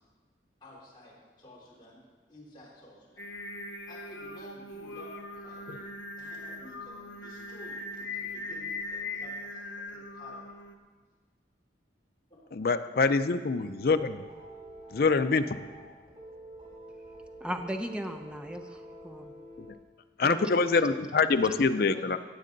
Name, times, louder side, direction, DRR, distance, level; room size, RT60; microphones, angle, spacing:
voice 1, 0.6-3.3 3.9-5.8 6.2-10.4 12.3-12.4 21.3-21.4 21.9-22.1, left 1 dB, 25° left, -7 dB, 3.7 m, -52 dB
Singing, 3.2-10.7, left 2 dB, 75° left, 0.9 m, -40 dB
voice 2, 12.5-14.2 14.9-15.6 19.6-19.7 20.2-22.2, left 4 dB, 55° left, 10 dB, 0.5 m, -25 dB
sound 1, 13.6-19.7, right 1 dB, 30° right, 2.6 m, -48 dB
voice 3, 17.4-19.3 20.2-20.5, equal, 5° right, 5 dB, 0.6 m, -37 dB
17.5 x 7.6 x 3.9 m, 1.4 s
head